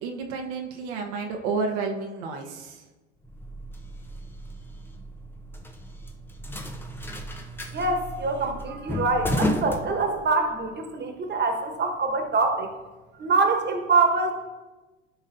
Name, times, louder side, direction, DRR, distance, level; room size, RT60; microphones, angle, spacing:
voice 1, 0.0-2.8, right 4 dB, 65° right, 2 dB, 1.1 m, -31 dB
sound 1, 3.2-10.6, left 1 dB, 5° left, 0.6 m, -33 dB
voice 2, 7.7-12.7 13.2-14.3, right 3 dB, 30° right, 4 dB, 1.4 m, -24 dB
12.0 x 5.2 x 2.7 m, 1.2 s
hypercardioid pair, 80°, 36 cm